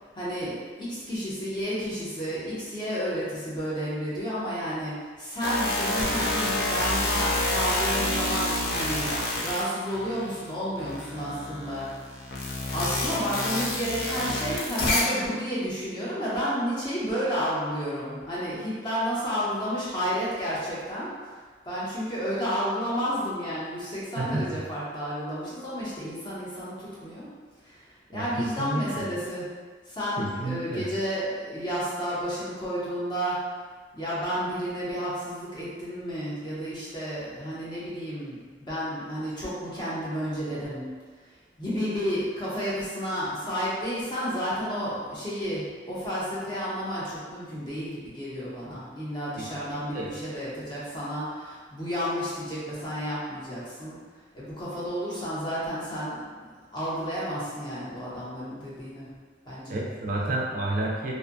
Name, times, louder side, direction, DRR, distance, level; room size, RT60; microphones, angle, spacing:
voice 1, 0.1-9.1 9.4-12.2 12.7-21.4 21.6-27.3 27.6-29.5 29.9-33.4 33.9-40.8 41.6-54.0 54.3-56.2 56.7-59.1 59.5-59.8, equal, 25° left, -9 dB, 0.7 m, -31 dB
sound 1, 5.4-10.4 10.8-15.2, left 1 dB, 60° left, 0.4 m, -28 dB
voice 2, 24.2-24.5 28.1-29.0 30.2-30.8 49.4-50.1 59.7-61.1, right 2 dB, 50° right, -3 dB, 0.3 m, -31 dB
2.5 x 2.1 x 2.5 m, 1.5 s
head